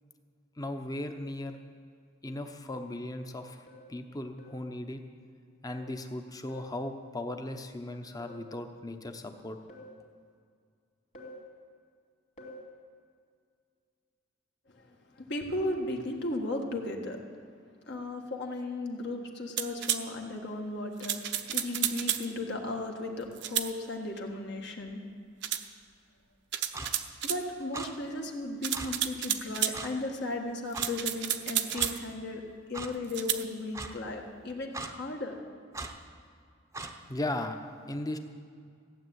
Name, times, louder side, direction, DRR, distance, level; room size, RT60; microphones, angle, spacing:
voice 1, 0.6-1.6 2.2-5.0 5.6-9.6 37.1-37.6 37.9-38.2, left 1 dB, 20° left, 6 dB, 0.9 m, -37 dB
sound 1, 3.7-4.0 4.4-4.7 5.7-6.0 6.5-6.8 8.2-8.5 9.7-10.0 11.1-11.5 12.4-12.7, equal, 40° left, 2.5 m, -49 dB
voice 2, 15.2-17.2 17.9-25.0 27.2-32.4 32.7-35.3, left 2 dB, 60° left, 2 dB, 1.6 m, -35 dB
sound 2, 19.6-20.0 21.0-22.3 23.4-23.7 25.4-25.7 26.5-27.4 28.6-29.8 30.7-32.0 33.1-33.4, right 11 dB, 60° right, 0.7 m, -31 dB
Clock, 26.7-26.9 27.7-27.9 28.7-28.9 29.7-29.9 30.7-30.9 31.7-31.9 32.7-32.9 33.7-33.9 34.7-34.9 35.7-35.9 36.7-36.9, right 3 dB, 15° right, 0.8 m, -38 dB
15.5 x 7.4 x 9.4 m, 2.2 s
head